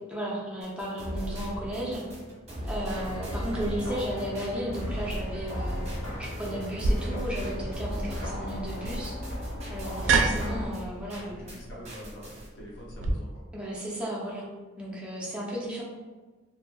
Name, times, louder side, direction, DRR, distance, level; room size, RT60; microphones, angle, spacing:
voice 1, 0.1-2.0 2.6-5.8 6.2-9.2 9.7-11.6 13.5-14.5 14.8-15.8, equal, 5° right, -5 dB, 0.6 m, -34 dB
sound 1, 0.6-11.6 11.8-12.5, equal, 35° right, 0.9 m, -38 dB
sound 2, 2.9-10.7, left 1 dB, 90° left, 1.0 m, -38 dB
sound 3, 6.8-13.1, right 3 dB, 80° right, 0.3 m, -30 dB
voice 2, 10.0-10.5 11.1-13.4, equal, 65° left, -5 dB, 0.9 m, -45 dB
3.0 x 2.6 x 2.2 m, 1.3 s
head